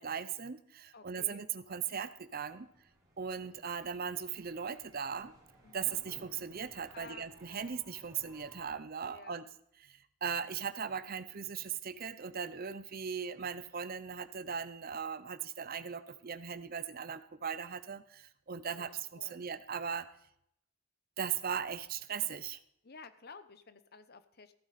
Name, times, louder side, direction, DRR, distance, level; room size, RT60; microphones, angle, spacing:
voice 1, 0.0-2.7 3.2-5.3 5.7-9.5 9.8-20.1 21.2-22.6, right 7 dB, 40° right, 13 dB, 0.6 m, -38 dB
voice 2, 0.9-1.4 5.6-6.0 6.9-8.0 9.0-9.4 18.7-19.4 22.8-24.5, left 4 dB, 45° left, 12 dB, 0.8 m, -54 dB
sound 1, 2.0-8.6, equal, 20° right, 4.2 m, -60 dB
15.0 x 8.9 x 4.2 m, 0.74 s
head